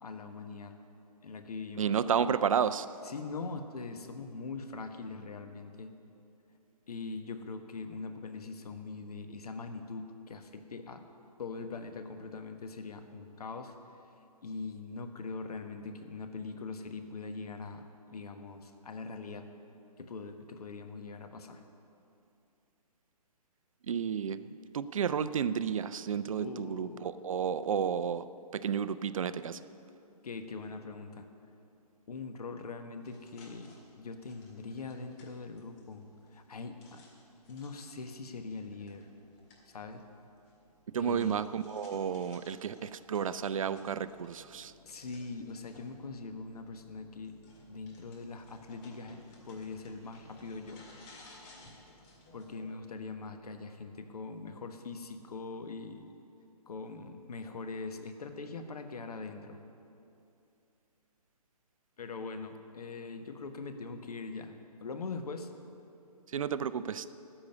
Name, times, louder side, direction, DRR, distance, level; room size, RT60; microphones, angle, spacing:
voice 1, 0.0-0.8 1.2-1.9 3.0-5.9 6.9-11.0 11.4-13.7 14.4-19.5 20.0-21.6 26.4-27.1 30.2-31.3 32.1-33.7 34.0-36.1 36.3-37.0 37.5-39.1 39.7-40.0 41.0-41.4 44.8-47.3 47.7-49.2 49.4-50.8 52.3-56.1 56.7-59.6 62.0-64.5 64.8-65.5, left 4 dB, 70° left, 7 dB, 1.3 m, -42 dB
voice 2, 1.8-2.9 23.9-24.4 24.7-28.3 28.5-29.6 40.9-44.7 66.3-67.1, right 7 dB, 55° right, 14 dB, 0.5 m, -31 dB
sound 1, 32.9-52.7, left 2 dB, 25° left, 2.1 m, -59 dB
14.0 x 6.3 x 9.5 m, 2.7 s
hypercardioid pair, 155°, 20 cm